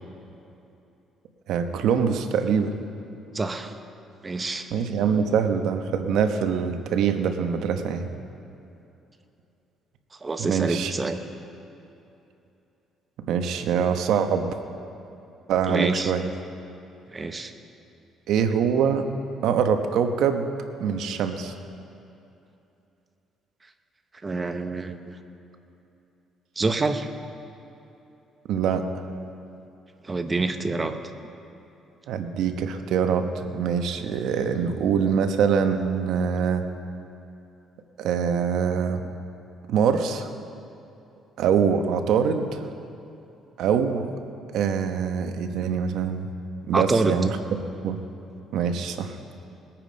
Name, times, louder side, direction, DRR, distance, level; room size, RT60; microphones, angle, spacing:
voice 1, 1.5-2.8 4.7-8.1 10.4-10.9 13.3-14.5 15.5-16.2 18.3-19.1 19.4-20.5 20.8-21.5 28.5-28.9 32.1-36.7 38.0-39.1 39.7-40.3 41.4-42.6 43.6-44.1 44.5-46.3 46.7-47.4 47.8-48.0 48.5-49.2, right 7 dB, 75° right, 7 dB, 1.0 m, -24 dB
voice 2, 3.3-3.7 4.2-4.7 10.2-11.2 15.7-16.1 17.1-17.5 24.2-25.2 26.6-27.1 30.0-31.0 46.7-47.2, right 3 dB, 25° right, 7 dB, 0.9 m, -26 dB
20.5 x 9.0 x 5.2 m, 2.8 s
cardioid pair, 100°, 0 cm